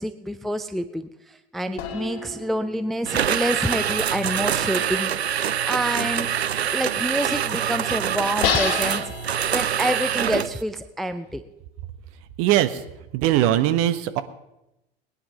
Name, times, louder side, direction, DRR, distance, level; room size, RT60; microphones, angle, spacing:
voice 1, 0.0-5.1 5.7-6.3 6.7-9.0 9.5-11.4, equal, ahead, 10 dB, 0.5 m, -27 dB
sound 1, 1.8-3.8 8.4-10.3, left 8 dB, 45° left, 2.7 m, -30 dB
sound 2, 3.0-10.6, right 9 dB, 85° right, 0.5 m, -25 dB
voice 2, 12.4-12.8 13.1-14.2, right 13 dB, 45° right, 11 dB, 1.2 m, -20 dB
19.5 x 10.0 x 5.6 m, 0.92 s
figure-of-eight pair, 85°, 31 cm